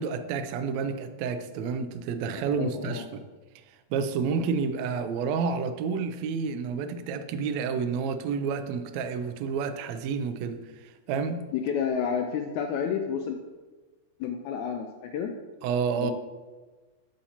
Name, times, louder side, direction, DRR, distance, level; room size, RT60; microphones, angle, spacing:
voice 1, 0.0-3.2 3.9-11.4 15.6-16.1, right 5 dB, 85° right, 9 dB, 1.5 m, -30 dB
voice 2, 2.6-3.1 11.5-13.4 14.2-15.3 16.0-16.1, left 7 dB, 80° left, 5 dB, 1.7 m, -30 dB
8.6 x 7.9 x 2.8 m, 1.3 s
omnidirectional pair, 3.7 m